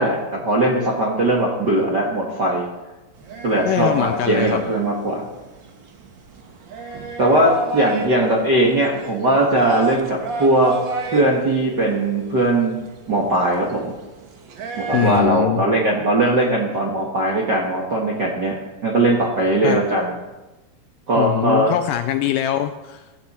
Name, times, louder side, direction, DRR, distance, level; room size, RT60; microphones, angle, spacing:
voice 1, 0.0-2.7 3.4-5.2 7.2-10.7 11.1-12.8 13.1-13.9 14.8-18.6 18.8-20.1 21.1-21.7, right 1 dB, 50° right, -2 dB, 1.3 m, -19 dB
sound 1, 3.1-15.2, right 3 dB, 75° right, 1.1 m, -32 dB
voice 2, 3.7-4.6 14.9-15.6 19.6-19.8 21.2-23.0, left 12 dB, 80° left, 8 dB, 2.0 m, -22 dB
15.5 x 14.5 x 4.3 m, 1.1 s
omnidirectional pair, 4.4 m